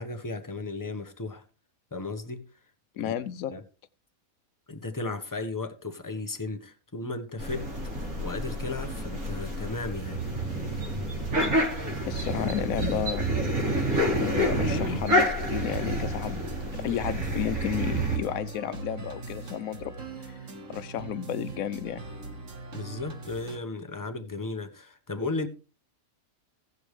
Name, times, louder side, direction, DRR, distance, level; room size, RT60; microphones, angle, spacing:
voice 1, 0.0-1.4 1.9-2.4 3.0-3.1 3.5-3.6 4.7-7.7 8.0-10.2 22.7-25.5, left 3 dB, 15° left, 0.8 m, -35 dB
voice 2, 3.0-3.5 12.1-13.3 14.2-19.9 20.3-20.4 20.7-22.0, left 10 dB, 75° left, 1.2 m, -32 dB
sound 1, 7.4-18.2, right 1 dB, 90° right, 3.3 m, -28 dB
sound 2, 15.6-23.6, right 2 dB, 60° right, 1.9 m, -40 dB
17.0 x 6.9 x 3.2 m
omnidirectional pair, 1.5 m